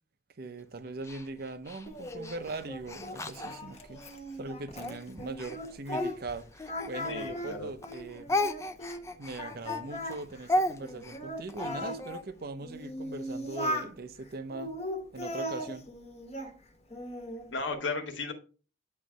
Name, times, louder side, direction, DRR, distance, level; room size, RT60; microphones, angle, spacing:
voice 1, 0.4-4.0 4.4-8.4 9.2-14.7 15.1-15.9, right 3 dB, 55° right, 0.6 m, -40 dB
Speech, 1.0-4.2 4.7-7.5 7.8-12.2, left 1 dB, 15° left, 0.5 m, -35 dB
Singing, 1.9-6.4 6.7-9.0 9.4-12.0 12.6-13.9 14.5-16.5 16.9-17.5, equal, 35° left, 1.3 m, -38 dB
voice 2, 7.1-7.7 17.5-18.3, left 3 dB, 85° left, 1.5 m, -34 dB
9.3 x 3.2 x 5.0 m
head